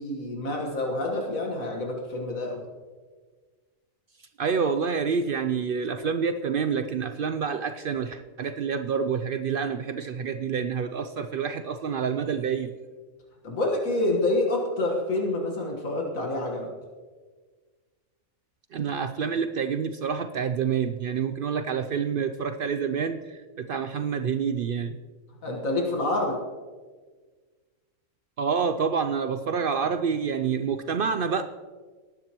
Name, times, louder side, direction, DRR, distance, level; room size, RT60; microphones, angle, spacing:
voice 1, 0.0-2.6 13.4-16.7 25.4-26.4, left 2 dB, 75° left, 0 dB, 1.9 m, -27 dB
voice 2, 4.4-12.7 18.7-25.0 28.4-31.4, right 6 dB, 70° right, 9 dB, 0.5 m, -28 dB
19.5 x 9.8 x 3.0 m, 1.4 s
omnidirectional pair, 1.4 m